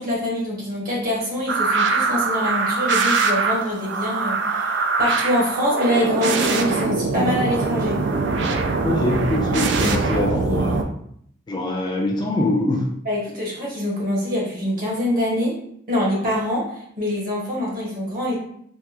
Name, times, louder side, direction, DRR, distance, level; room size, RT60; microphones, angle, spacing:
voice 1, 0.0-8.0 13.0-15.6 15.9-18.4, left 1 dB, 50° right, -5 dB, 1.3 m, -24 dB
sound 1, 1.5-10.8, right 4 dB, 65° right, 0.4 m, -22 dB
voice 2, 8.8-10.8 11.5-12.9, left 1 dB, 25° left, -1 dB, 0.4 m, -23 dB
3.5 x 2.4 x 2.9 m, 0.68 s
head